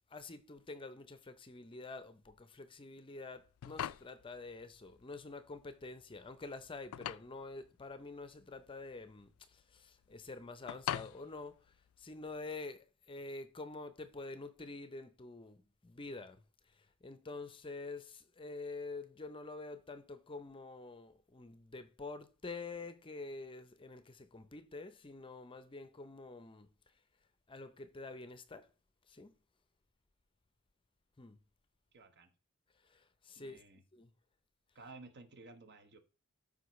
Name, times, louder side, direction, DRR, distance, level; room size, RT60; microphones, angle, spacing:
voice 1, 0.1-11.7 12.0-16.4 16.8-26.7 27.5-28.7 29.1-29.3 31.2-31.4 32.8-33.6 33.9-34.1, left 3 dB, 25° left, 0.6 m, -47 dB
sound 1, 3.4-12.3, left 10 dB, 70° left, 0.3 m, -45 dB
voice 2, 31.9-32.3 33.4-33.8 34.7-36.0, right 3 dB, 50° right, 1.2 m, -54 dB
13.0 x 5.2 x 3.1 m
head